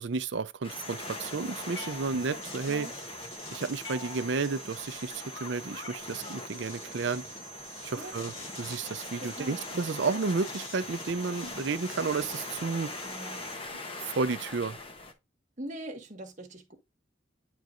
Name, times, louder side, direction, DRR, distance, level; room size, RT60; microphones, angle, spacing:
voice 1, 0.0-2.9 3.5-7.2 7.8-8.3 8.6-12.9 14.0-14.8, right 4 dB, 65° right, 0.5 m, -32 dB
sound 1, 0.6-15.1, left 3 dB, 30° left, 0.9 m, -42 dB
sound 2, 0.7-13.6, right 2 dB, 85° left, 2.8 m, -46 dB
sound 3, 1.7-2.6 3.8-4.6 5.8-6.6, left 4 dB, 65° left, 1.4 m, -47 dB
voice 2, 9.2-9.7 13.0-13.5 15.6-16.8, right 1 dB, 40° right, 1.5 m, -42 dB
9.3 x 4.5 x 2.5 m
head